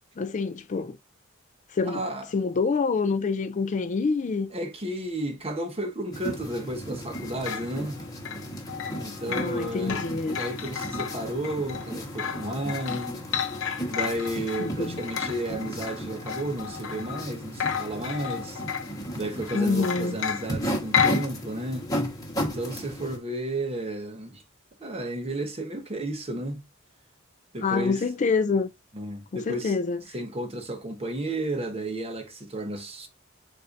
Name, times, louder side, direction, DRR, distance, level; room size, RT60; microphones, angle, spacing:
voice 1, 0.2-1.0 1.7-2.0 2.3-4.5 9.3-10.4 14.6-15.0 19.5-20.2 27.6-28.7 29.3-30.0, left 4 dB, 35° left, 0.4 m, -26 dB
voice 2, 1.9-2.3 4.5-8.0 8.9-13.2 13.9-18.6 19.1-21.9 22.4-24.4 24.8-26.6 27.5-28.0 28.9-29.7 30.1-33.1, right 1 dB, 30° right, 0.9 m, -33 dB
sound 1, 6.1-23.2, equal, 20° left, 1.2 m, -35 dB
sound 2, 7.1-17.3 17.6-19.1 19.4-21.3, left 8 dB, 65° left, 0.7 m, -32 dB
7.5 x 2.5 x 2.5 m
head